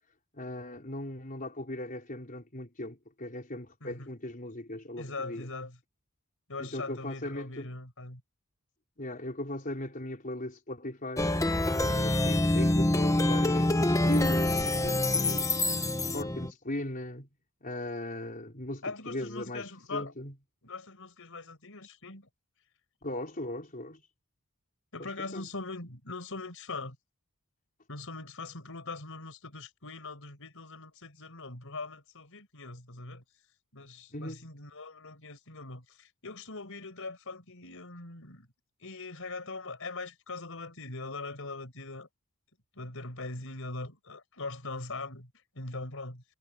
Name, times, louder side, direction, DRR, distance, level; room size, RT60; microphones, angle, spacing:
voice 1, 0.3-5.5 6.6-7.7 9.0-11.3 11.7-15.5 16.1-17.3 17.6-20.3 23.0-24.0 25.0-25.5 34.1-34.4, left 1 dB, 40° left, 4.5 m, -38 dB
voice 2, 5.0-5.8 6.5-8.2 18.8-20.1 20.6-22.3 24.9-27.0 27.9-33.2 33.7-38.5 38.8-42.1 42.8-46.2, left 3 dB, 65° left, 5.6 m, -41 dB
Plucked string instrument, 11.2-16.5, left 1 dB, 15° left, 1.2 m, -26 dB
head